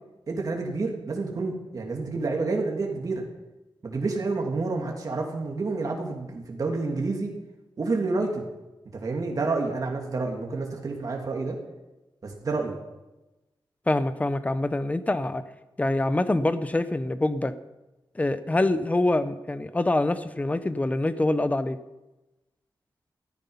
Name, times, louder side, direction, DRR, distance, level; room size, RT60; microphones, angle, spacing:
voice 1, 0.3-3.2 3.8-7.3 7.8-8.5 8.9-11.6 12.2-12.8, right 3 dB, 45° right, 1 dB, 2.4 m, -29 dB
voice 2, 13.9-15.4 15.8-17.5 18.1-21.8, left 2 dB, 15° left, 12 dB, 0.7 m, -25 dB
14.5 x 13.5 x 5.6 m, 1.0 s
wide cardioid pair, 175°, 9 cm